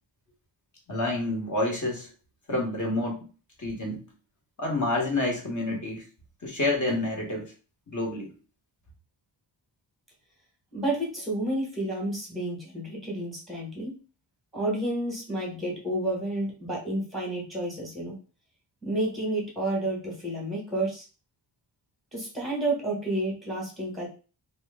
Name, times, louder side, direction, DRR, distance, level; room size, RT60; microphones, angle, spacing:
voice 1, 0.9-2.1 2.5-3.3 3.6-4.0 4.6-6.0 6.4-7.5 7.9-8.3, left 2 dB, 40° left, -1 dB, 1.1 m, -28 dB
voice 2, 10.7-13.9 14.5-18.1 18.8-21.0 22.1-24.1, right 1 dB, ahead, -2 dB, 1.1 m, -30 dB
2.9 x 2.2 x 3.4 m, 0.35 s
wide cardioid pair, 135°, 47 cm